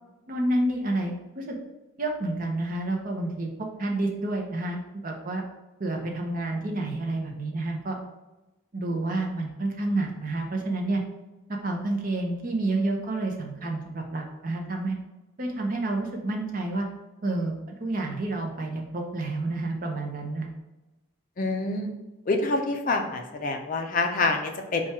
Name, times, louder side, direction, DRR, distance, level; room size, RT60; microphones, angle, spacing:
voice 1, 0.3-1.5 2.0-5.4 5.8-8.0 8.7-11.0 11.5-15.0 15.4-16.9 17.2-20.5, right 2 dB, 40° right, 2 dB, 0.6 m, -29 dB
voice 2, 21.4-21.9 22.3-24.8, left 3 dB, 40° left, 4 dB, 0.4 m, -26 dB
4.4 x 2.3 x 4.4 m, 1.0 s
head